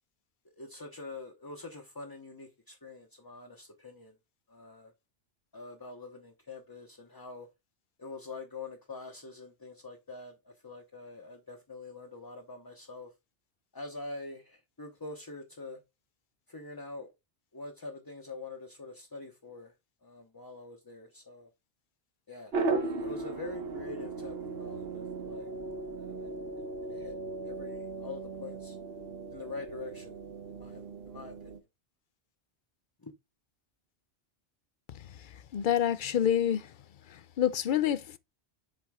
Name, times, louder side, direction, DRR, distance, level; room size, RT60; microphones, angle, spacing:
voice 1, 0.5-4.2 4.5-4.9 5.5-7.5 8.0-13.1 13.7-15.8 16.5-17.1 17.5-19.7 20.0-21.5 22.3-22.5 22.8-25.5 26.0-26.3 26.8-27.2 27.4-28.8 29.3-30.2 30.5-31.5 33.0-33.1, left 3 dB, 20° left, 0.8 m, -45 dB
sound 1, 22.5-31.6, right 3 dB, 60° right, 1.2 m, -37 dB
voice 2, 35.5-36.7 37.1-38.2, left 10 dB, 60° left, 0.6 m, -27 dB
7.6 x 4.3 x 3.5 m
omnidirectional pair, 1.2 m